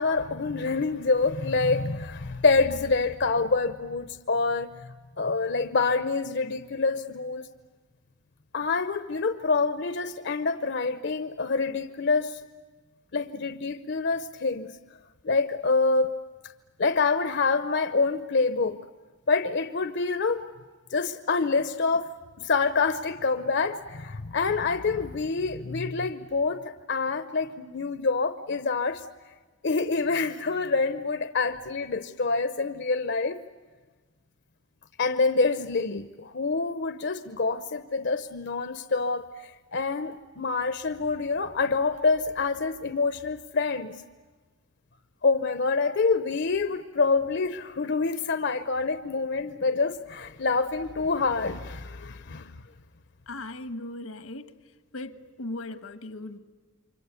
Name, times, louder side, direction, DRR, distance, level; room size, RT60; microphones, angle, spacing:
voice 1, 0.0-7.5 8.5-12.4 13.1-14.8 15.2-16.1 16.8-18.8 19.3-20.4 20.9-22.1 22.4-29.0 29.6-33.4 35.0-44.0 45.2-52.5, left 4 dB, 55° left, 0.8 m, -26 dB
voice 2, 53.3-54.5 54.9-56.4, left 2 dB, 85° left, 1.4 m, -38 dB
28.5 x 24.5 x 8.2 m
head